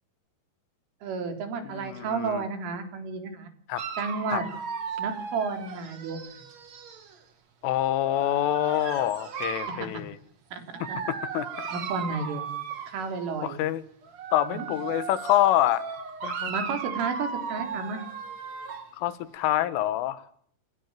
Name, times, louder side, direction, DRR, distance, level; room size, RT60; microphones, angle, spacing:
voice 1, 1.0-3.5 4.0-4.4 5.0-6.2 9.8-9.9 10.5-11.0 11.7-12.4 12.9-13.6 14.5-14.7 16.5-18.0, right 4 dB, 85° right, 6.3 m, -32 dB
voice 2, 1.7-2.4 3.7-3.8 4.3-4.4 7.6-10.2 11.3-11.5 13.4-13.8 14.3-15.9 16.2-16.5 19.0-20.3, left 13 dB, 90° left, 4.0 m, -26 dB
Dog, 3.8-7.2 8.0-9.9 10.7-13.3 14.0-18.9, right 6 dB, 40° right, 3.1 m, -36 dB
29.5 x 21.5 x 7.5 m
omnidirectional pair, 5.5 m